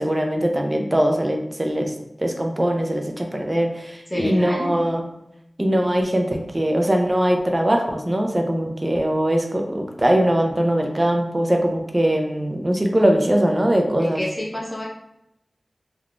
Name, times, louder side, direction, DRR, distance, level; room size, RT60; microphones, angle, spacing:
voice 1, 0.0-1.9 2.2-5.0 5.6-14.2, right 1 dB, 25° right, 2 dB, 0.4 m, -21 dB
voice 2, 4.1-4.8 14.0-14.9, left 1 dB, 15° left, -4 dB, 0.8 m, -28 dB
3.5 x 2.3 x 2.4 m, 0.82 s
wide cardioid pair, 70°, 0 cm